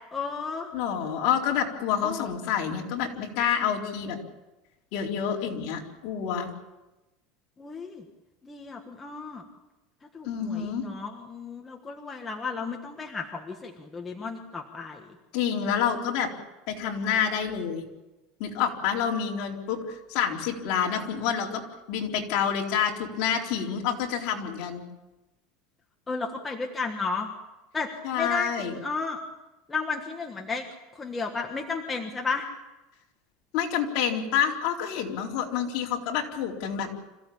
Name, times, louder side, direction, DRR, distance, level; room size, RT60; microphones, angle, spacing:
voice 1, 0.1-0.7 2.0-2.2 7.6-8.0 8.4-9.4 10.1-15.0 26.1-27.3 27.7-29.2 29.7-30.6 30.9-32.4, left 4 dB, 10° left, 2 dB, 1.5 m, -33 dB
voice 2, 0.7-4.2 4.9-6.5 10.3-10.8 15.3-16.3 16.7-17.9 18.4-21.6 21.9-24.8 28.0-28.7 33.5-36.9, left 8 dB, 50° left, 0 dB, 4.0 m, -28 dB
26.5 x 15.5 x 8.6 m, 1.0 s
cardioid pair, 165°, 0 cm